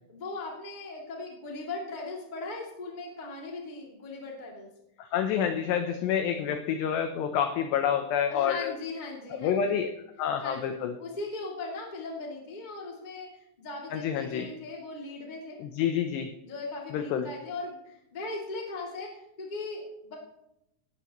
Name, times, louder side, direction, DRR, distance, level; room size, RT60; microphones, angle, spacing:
voice 1, 0.1-4.7 8.3-9.9 10.4-10.7 11.0-15.6 16.4-20.1, left 3 dB, 50° left, -2 dB, 0.5 m, -38 dB
voice 2, 5.0-8.7 9.3-9.9 10.2-10.9 13.9-14.5 15.6-16.3 16.9-17.3, left 8 dB, 90° left, 7 dB, 2.4 m, -28 dB
19.0 x 12.0 x 3.0 m, 0.84 s
omnidirectional pair, 5.8 m